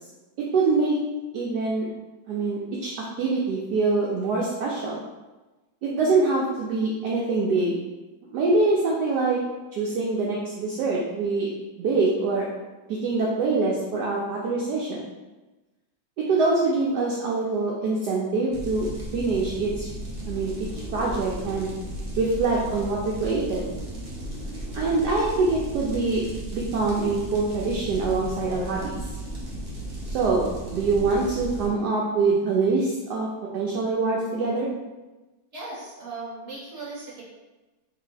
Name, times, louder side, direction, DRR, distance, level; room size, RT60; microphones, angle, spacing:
voice 1, 0.4-1.0 1.3-1.9 2.3-5.0 5.8-7.8 8.2-9.4 9.8-11.5 11.8-12.5 12.9-15.0 16.2-18.9 19.1-19.9 20.3-21.7 22.2-23.7 24.7-26.2 26.5-29.0 30.1-33.3 33.5-34.7, right 3 dB, 70° right, -3 dB, 1.0 m, -24 dB
sound 1, 18.5-31.7, right 1 dB, 45° right, 0.5 m, -35 dB
voice 2, 35.5-37.2, right 3 dB, 20° right, -8 dB, 1.3 m, -37 dB
3.3 x 2.8 x 3.9 m, 1.1 s
omnidirectional pair, 2.1 m